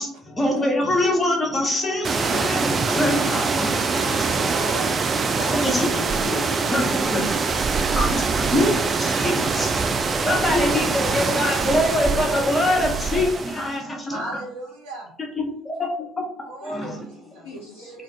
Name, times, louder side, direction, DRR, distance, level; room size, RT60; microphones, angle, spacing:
voice 1, 0.0-3.8 4.2-4.3 5.5-7.2 7.9-9.8 10.2-14.3 15.4-15.9 16.6-17.0 17.6-17.7, left 1 dB, 20° left, 1 dB, 0.8 m, -24 dB
sound 1, 2.0-13.7, right 4 dB, 35° right, 0.3 m, -23 dB
voice 2, 3.4-5.0 5.3-7.5 17.4-17.9, left 3 dB, 75° left, -2 dB, 0.4 m, -37 dB
voice 3, 14.1-15.1 16.4-17.5 17.7-18.0, right 2 dB, 70° right, -1 dB, 0.8 m, -37 dB
2.4 x 2.3 x 3.5 m, 0.63 s
figure-of-eight pair, 55°, 0 cm